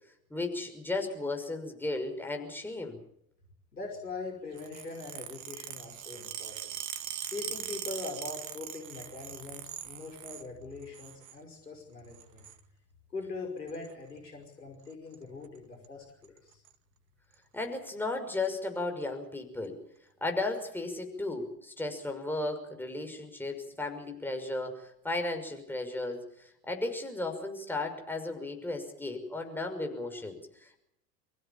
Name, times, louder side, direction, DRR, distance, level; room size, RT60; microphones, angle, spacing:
voice 1, 0.3-3.0 17.5-19.8 20.2-30.8, left 2 dB, 5° left, 4 dB, 5.9 m, -35 dB
voice 2, 3.7-6.8 7.3-12.5 13.1-16.6, left 3 dB, 80° left, 2 dB, 5.5 m, -42 dB
sound 1, 4.6-10.5 10.8-11.4 12.1-12.6 13.7-13.9 14.9-15.2 15.4-15.6 15.8-15.9 16.2-16.7 17.3-17.4 18.4-18.5, right 11 dB, 50° right, 2.1 m, -41 dB
29.5 x 16.0 x 7.3 m, 0.75 s
figure-of-eight pair, 80°, 48 cm